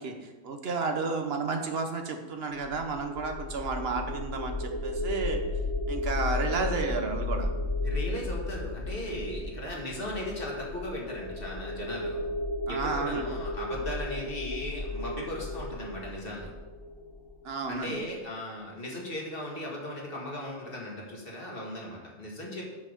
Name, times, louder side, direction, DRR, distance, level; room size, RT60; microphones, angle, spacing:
voice 1, 0.0-5.4 5.9-7.5 12.7-13.3 17.4-18.0, right 4 dB, 65° right, 5 dB, 1.1 m, -32 dB
sound 1, 2.6-17.7, left 2 dB, 80° left, 1.5 m, -34 dB
voice 2, 7.8-12.3 12.7-16.5 17.7-22.6, left 1 dB, 55° left, -2 dB, 1.9 m, -37 dB
6.0 x 5.6 x 6.5 m, 1.2 s
omnidirectional pair, 1.1 m